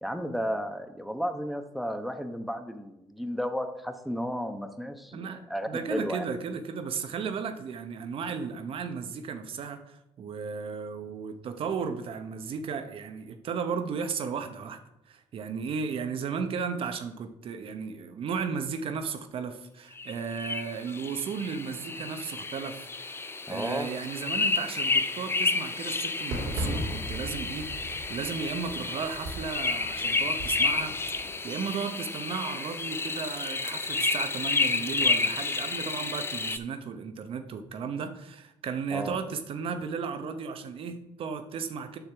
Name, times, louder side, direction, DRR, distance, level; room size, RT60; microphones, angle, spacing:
voice 1, 0.0-6.2 23.5-23.9 38.9-39.2, equal, ahead, 6 dB, 1.0 m, -33 dB
voice 2, 5.1-14.8 15.1-42.0, right 6 dB, 60° right, 8 dB, 1.0 m, -35 dB
sound 1, 20.0-36.6, left 3 dB, 20° left, 0.6 m, -31 dB
Fireworks, 26.3-31.4, right 1 dB, 80° right, 2.6 m, -37 dB
9.0 x 6.5 x 3.5 m, 0.87 s
supercardioid pair, 65°, 11 cm